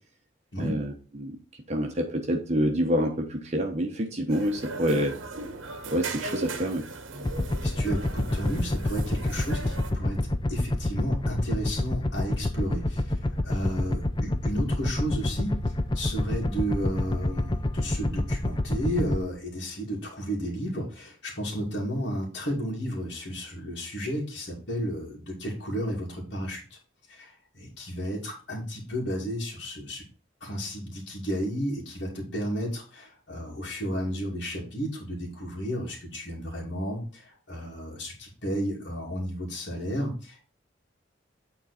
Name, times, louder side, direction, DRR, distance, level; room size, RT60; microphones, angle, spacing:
voice 1, 0.6-1.4 1.7-5.1 5.9-6.8, equal, 35° right, 2 dB, 1.0 m, -27 dB
sound 1, 4.3-9.9, right 3 dB, 90° right, 1.1 m, -38 dB
sound 2, 7.2-19.2, left 1 dB, 25° left, 0.5 m, -27 dB
voice 2, 7.6-10.2 10.5-26.8 27.1-30.0 30.4-40.5, equal, 60° left, -4 dB, 2.6 m, -33 dB
9.1 x 3.9 x 4.1 m, 0.37 s
head